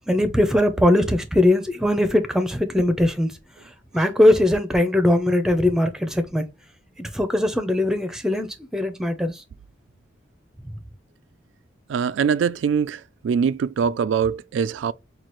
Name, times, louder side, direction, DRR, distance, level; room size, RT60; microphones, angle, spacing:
voice 1, 0.1-3.4 3.9-6.5 7.0-9.4, left 1 dB, 5° right, 0.6 m, -20 dB
voice 2, 11.9-14.9, right 6 dB, 80° right, 0.3 m, -23 dB
5.9 x 2.4 x 3.0 m
head